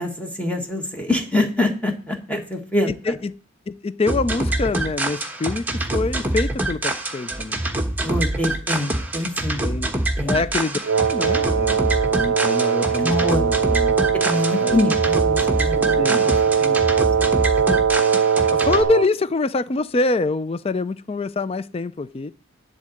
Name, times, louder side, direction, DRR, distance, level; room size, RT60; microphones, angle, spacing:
voice 1, 0.0-3.2 8.0-9.6 10.2-10.4 13.0-13.4 14.2-16.8 17.4-17.5, left 1 dB, 5° left, 1.5 m, -25 dB
voice 2, 2.9-3.3 3.7-7.6 9.6-9.9 10.3-10.8 11.1-14.0 14.6-14.8 15.9-16.3 17.7-17.8 18.5-22.3, left 3 dB, 30° left, 0.4 m, -25 dB
sound 1, 4.1-18.8, right 1 dB, 10° right, 1.2 m, -25 dB
Wind instrument woodwind instrument, 10.8-19.1, right 7 dB, 85° right, 0.5 m, -20 dB
11.0 x 3.9 x 7.7 m
head